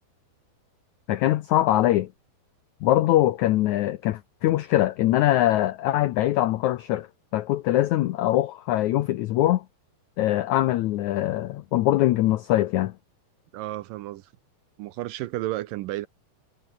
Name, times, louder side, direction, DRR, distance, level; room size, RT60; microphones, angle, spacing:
voice 1, 1.1-2.1 2.8-7.1 7.3-9.6 10.2-12.9, left 14 dB, 85° left, 1.6 m, -22 dB
voice 2, 13.5-14.3 14.8-16.1, right 16 dB, 75° right, 2.2 m, -32 dB
omnidirectional pair, 4.4 m